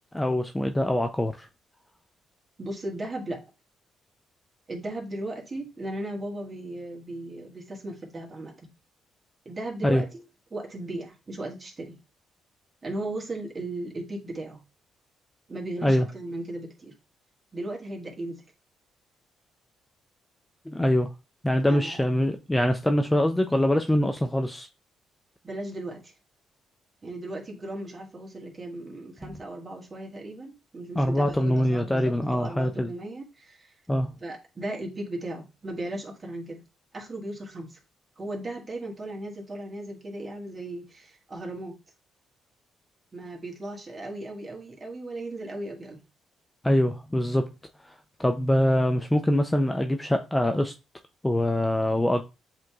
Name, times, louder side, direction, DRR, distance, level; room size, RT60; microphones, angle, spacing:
voice 1, 0.1-1.5 9.8-10.0 15.8-16.1 20.7-21.1 21.4-24.7 29.2-29.4 31.0-32.9 33.9-34.1 46.6-47.5 47.9-48.0 48.2-50.7 51.2-52.2, left 1 dB, 10° left, 0.4 m, -24 dB
voice 2, 2.6-3.4 4.7-8.5 9.4-10.2 10.5-12.0 12.8-14.6 15.5-16.9 17.5-18.4 21.7-22.0 25.4-26.1 27.0-33.7 34.2-36.6 36.9-37.8 38.2-41.8 43.1-46.0, right 1 dB, 30° right, 1.6 m, -36 dB
7.5 x 2.9 x 2.3 m
cardioid pair, 90°, 0 cm